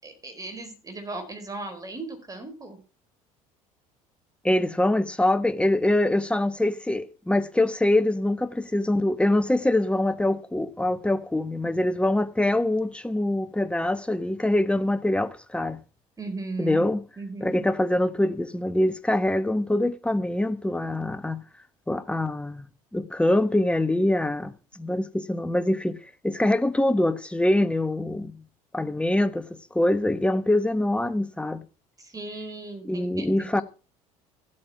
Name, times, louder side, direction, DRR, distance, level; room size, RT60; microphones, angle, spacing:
voice 1, 0.0-2.8 16.2-16.9 17.2-17.7 32.0-33.3, right 3 dB, 20° right, 4.5 m, -37 dB
voice 2, 4.4-15.8 16.6-17.0 17.4-21.4 21.9-26.0 26.2-28.4 28.7-29.5 29.7-31.6 32.8-33.6, left 1 dB, 5° left, 1.0 m, -24 dB
14.0 x 8.8 x 4.8 m
figure-of-eight pair, 65°, 19 cm